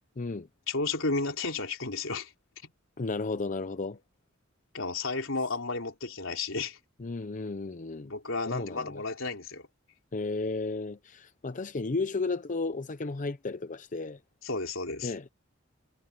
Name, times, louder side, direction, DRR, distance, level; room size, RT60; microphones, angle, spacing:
voice 1, 0.2-0.5 3.0-4.0 7.0-8.1 8.5-9.0 10.1-14.2 15.0-15.3, left 3 dB, 40° left, 0.6 m, -33 dB
voice 2, 0.7-2.3 4.7-6.8 8.0-9.6 14.4-15.1, left 3 dB, 80° left, 3.7 m, -32 dB
head